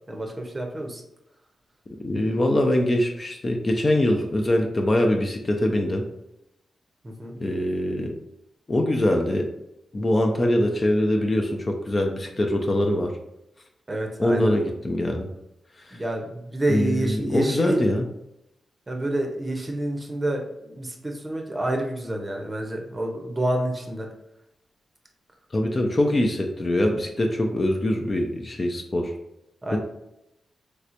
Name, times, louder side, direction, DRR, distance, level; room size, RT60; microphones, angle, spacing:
voice 1, 0.1-1.0 7.0-7.3 13.9-14.5 15.9-17.8 18.9-24.1 29.6-29.8, right 1 dB, 25° right, 2 dB, 0.7 m, -28 dB
voice 2, 2.0-6.1 7.4-8.1 8.7-9.5 9.9-13.1 14.2-15.3 15.9-16.0 16.7-18.1 25.5-29.1 29.7-29.8, left 1 dB, 35° left, 3 dB, 0.5 m, -23 dB
3.3 x 2.9 x 2.5 m, 0.84 s
cardioid pair, 70°, 0 cm